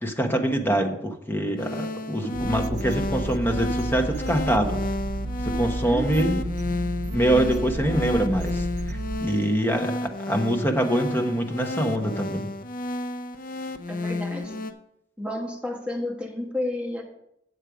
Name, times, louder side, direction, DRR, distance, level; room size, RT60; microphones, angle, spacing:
voice 1, 0.0-4.8 5.4-6.5 7.1-9.9 10.3-12.5, right 1 dB, 10° left, 4 dB, 1.0 m, -24 dB
sound 1, 1.6-14.7, left 2 dB, 55° left, 0.6 m, -32 dB
sound 2, 2.3-9.2, right 1 dB, 60° right, 0.6 m, -32 dB
voice 2, 5.9-6.4 13.9-14.6 15.2-17.0, left 1 dB, 5° right, 0 dB, 1.5 m, -31 dB
8.2 x 7.4 x 4.9 m, 0.77 s
head